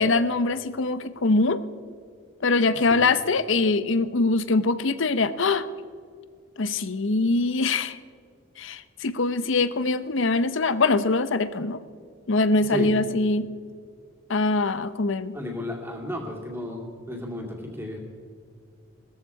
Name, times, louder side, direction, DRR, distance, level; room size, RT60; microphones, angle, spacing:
voice 1, 0.0-1.6 2.4-5.7 6.6-8.0 8.6-11.8 12.3-13.5 14.3-15.4, left 3 dB, 65° left, 14 dB, 0.7 m, -23 dB
voice 2, 15.3-18.0, left 1 dB, 10° right, 0 dB, 2.4 m, -33 dB
18.5 x 14.0 x 4.8 m, 2.1 s
head